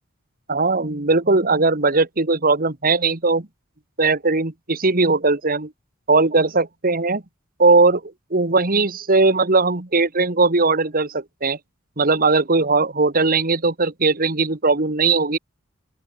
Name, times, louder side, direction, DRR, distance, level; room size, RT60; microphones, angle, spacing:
voice 1, 0.5-3.5 4.0-5.7 6.1-7.2 7.6-11.6 12.0-15.4, right 3 dB, 45° right, 1.7 m, -19 dB
open air
head